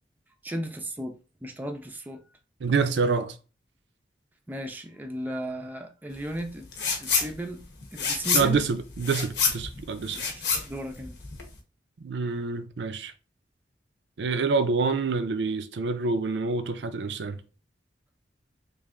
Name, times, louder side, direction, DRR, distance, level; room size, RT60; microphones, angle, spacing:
voice 1, 0.4-1.1 1.4-2.2 4.5-6.7 6.9-7.6 7.9-8.6 10.2-11.1, equal, 10° right, 0.4 m, -35 dB
voice 2, 2.6-3.4 8.3-10.2 12.0-13.1 14.2-17.4, right 4 dB, 75° right, 0.5 m, -27 dB
sound 1, 6.7-7.3 7.6-11.6, left 5 dB, 75° left, 0.9 m, -27 dB
3.2 x 2.5 x 3.6 m
head